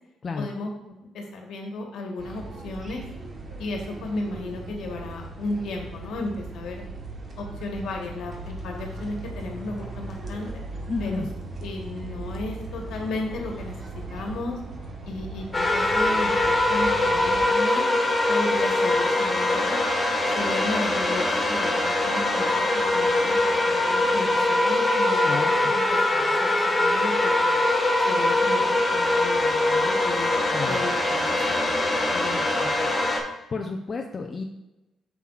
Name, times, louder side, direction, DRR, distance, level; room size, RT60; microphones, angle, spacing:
voice 1, 0.4-3.0 3.6-6.8 7.4-10.6 11.0-11.2 11.6-13.7 14.1-14.6 15.0-17.8 18.3-19.8 20.3-27.6 28.0-30.3 30.6-33.0, left 2 dB, 75° left, 1 dB, 1.4 m, -34 dB
sound 1, 2.2-17.5, right 2 dB, 40° right, 1.2 m, -38 dB
voice 2, 10.9-11.3 25.1-25.7 30.5-30.8 33.5-34.4, left 4 dB, 40° left, 3 dB, 0.6 m, -31 dB
sound 2, 15.5-33.2, left 2 dB, 25° left, 1.6 m, -22 dB
8.0 x 5.9 x 2.5 m, 0.96 s
cardioid pair, 90°, 0 cm